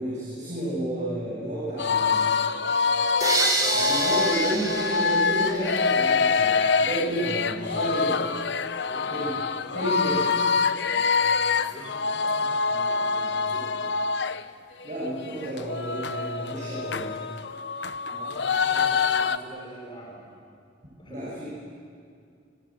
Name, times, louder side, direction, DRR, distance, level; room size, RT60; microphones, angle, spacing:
voice 1, 0.0-2.3 3.6-8.2 9.1-9.3 9.7-10.3 14.8-17.2 21.1-21.5, right 1 dB, 40° right, -7 dB, 7.6 m, -31 dB
sound 1, 1.8-14.4 14.8-14.9 15.2-19.4, left 5 dB, 65° left, 0.8 m, -25 dB
sound 2, 3.2-6.2, right 2 dB, 20° right, 3.4 m, -28 dB
voice 2, 7.7-8.3 8.8-9.1 10.8-14.0 18.0-20.3 21.0-21.3, equal, 25° left, -2 dB, 4.3 m, -45 dB
29.5 x 24.0 x 7.7 m, 2.4 s
head